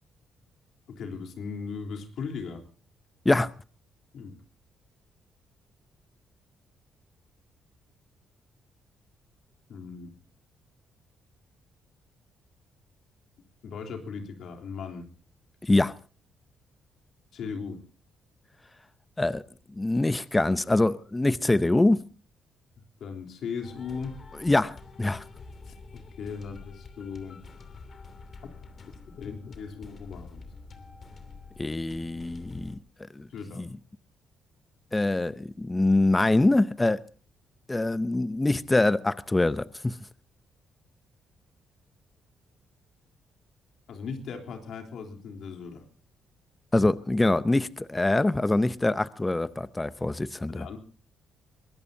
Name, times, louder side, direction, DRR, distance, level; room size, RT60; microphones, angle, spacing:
voice 1, 1.0-2.6 4.1-4.4 9.7-10.1 13.6-15.1 17.3-17.8 23.0-24.2 25.6-27.4 29.1-30.4 33.3-33.7 43.9-45.8 50.5-50.8, left 5 dB, 70° left, 3.5 m, -38 dB
voice 2, 15.6-15.9 19.2-19.4 19.8-22.0 24.4-25.2 31.6-32.7 33.2-33.3 33.6-33.7 34.9-37.0 37.7-40.0 46.7-50.7, left 2 dB, 15° left, 0.7 m, -24 dB
sound 1, 23.6-32.8, left 4 dB, 45° left, 2.8 m, -47 dB
22.5 x 18.0 x 2.8 m
cardioid pair, 90°, 0 cm